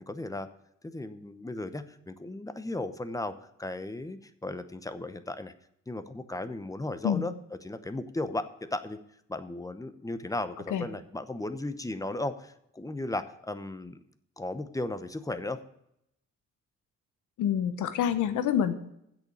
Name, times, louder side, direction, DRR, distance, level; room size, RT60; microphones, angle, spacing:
voice 1, 0.1-0.5 0.8-3.3 3.6-5.5 5.9-7.3 7.6-9.0 9.3-14.0 14.4-15.6, left 2 dB, 10° left, 10 dB, 0.8 m, -35 dB
voice 2, 17.4-18.7, left 9 dB, 80° left, 10 dB, 1.1 m, -27 dB
8.0 x 6.8 x 8.4 m, 0.77 s
cardioid pair, 90°, 30 cm